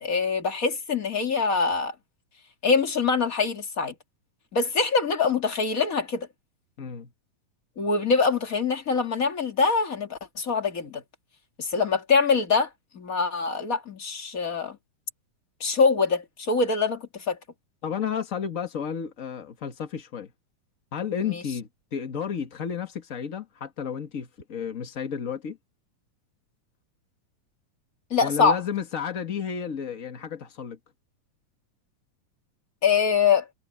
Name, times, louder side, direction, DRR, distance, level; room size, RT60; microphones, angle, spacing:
voice 1, 0.0-1.9 2.6-3.9 4.5-6.3 7.8-11.0 11.6-12.7 12.9-14.8 15.6-17.4 21.3-21.4 28.1-28.6 32.8-33.5, left 5 dB, 30° left, 2.1 m, -24 dB
voice 2, 6.8-7.1 17.8-20.3 20.9-25.6 28.2-30.8, left 7 dB, 70° left, 0.7 m, -32 dB
omnidirectional pair, 3.9 m